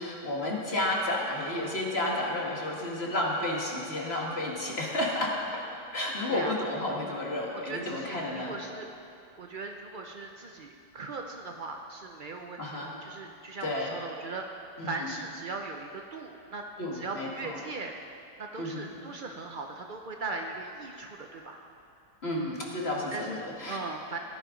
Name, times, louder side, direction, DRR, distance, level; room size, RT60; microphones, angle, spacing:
voice 1, 0.0-5.6 5.9-8.5 12.6-13.0 13.6-14.0 14.8-15.1 16.8-17.6 18.6-18.9 22.2-23.8, left 1 dB, 35° left, -3 dB, 2.2 m, -31 dB
voice 2, 7.6-8.9 9.4-16.6 16.9-18.0 18.4-21.6 23.1-24.2, right 3 dB, 70° right, 2 dB, 0.4 m, -39 dB
16.5 x 11.0 x 5.1 m, 2.6 s
omnidirectional pair, 1.9 m